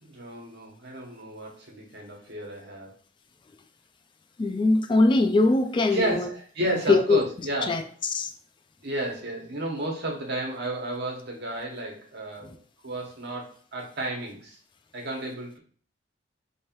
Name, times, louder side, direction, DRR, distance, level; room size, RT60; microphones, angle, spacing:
voice 1, 0.0-3.0 5.9-7.9 8.8-14.6 14.9-15.6, right 1 dB, 60° right, 0 dB, 1.2 m, -32 dB
voice 2, 4.4-6.3 6.6-7.2 7.7-7.8 8.1-8.3, left 2 dB, 25° left, 7 dB, 0.3 m, -21 dB
3.2 x 2.7 x 4.5 m, 0.43 s
head